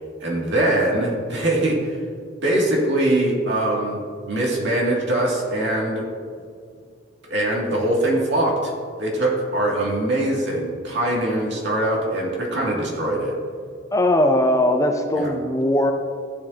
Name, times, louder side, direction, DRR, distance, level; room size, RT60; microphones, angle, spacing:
voice 1, 0.2-2.0 2.4-6.0 7.3-8.7 9.0-13.4 15.1-15.3, right 1 dB, 60° right, -3 dB, 2.3 m, -22 dB
voice 2, 13.9-15.9, left 1 dB, 15° left, 4 dB, 0.5 m, -19 dB
15.0 x 7.0 x 2.8 m, 2.1 s
head